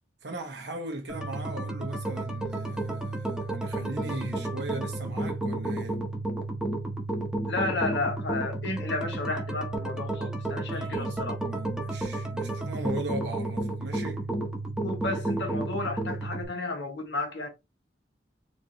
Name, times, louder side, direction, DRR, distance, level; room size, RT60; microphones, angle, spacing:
voice 1, 0.2-6.0 10.7-14.2, right 2 dB, 75° right, 1.0 m, -38 dB
sound 1, 1.1-16.5, right 2 dB, 5° right, 0.8 m, -32 dB
voice 2, 7.4-11.4 14.8-17.5, left 3 dB, 90° left, 1.4 m, -32 dB
4.7 x 2.6 x 2.8 m
head